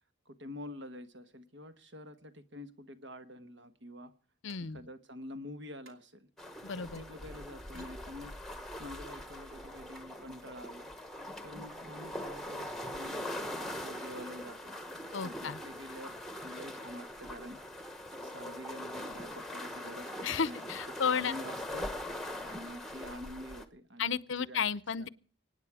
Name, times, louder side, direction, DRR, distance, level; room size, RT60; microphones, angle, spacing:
voice 1, 0.2-4.1 4.7-6.3 6.7-8.3 8.8-10.9 11.4-14.8 15.2-16.1 16.4-17.6 18.2-20.7 21.0-21.9 22.4-24.6 25.0-25.1, equal, 65° right, 1.3 m, -47 dB
voice 2, 4.4-4.8 6.6-7.0 15.1-15.6 20.2-21.3 24.0-25.1, left 6 dB, 70° left, 0.6 m, -33 dB
sound 1, 4.5-4.6 5.8-6.0 6.8-6.9 7.5-7.9 9.6-10.0, right 3 dB, 85° right, 2.8 m, -61 dB
sound 2, 6.4-23.6, left 1 dB, ahead, 1.0 m, -42 dB
24.5 x 9.6 x 4.8 m
head